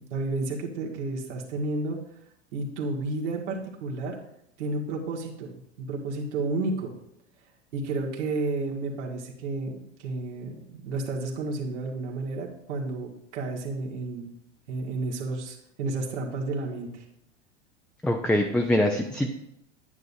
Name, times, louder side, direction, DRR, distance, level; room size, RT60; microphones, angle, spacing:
voice 1, 0.0-2.0 2.5-4.1 4.6-5.6 5.9-6.9 7.7-14.3 14.7-17.0, right 3 dB, 70° right, -1 dB, 2.1 m, -31 dB
voice 2, 18.0-19.3, left 1 dB, 5° left, 2 dB, 0.6 m, -24 dB
9.5 x 9.4 x 2.8 m, 0.77 s
hypercardioid pair, 90°, 36 cm